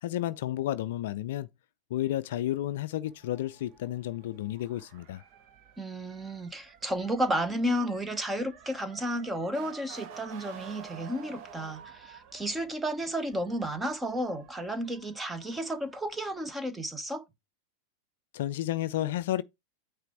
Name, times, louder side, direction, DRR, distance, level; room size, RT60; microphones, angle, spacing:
voice 1, 0.0-1.5 1.9-5.2 18.3-19.4, left 13 dB, 55° left, 0.4 m, -31 dB
Motor vehicle (road) / Siren, 3.0-16.5, right 7 dB, 40° right, 1.1 m, -51 dB
voice 2, 5.8-17.2, equal, 10° right, 1.0 m, -32 dB
9.0 x 3.2 x 4.6 m
figure-of-eight pair, 90°, 0 cm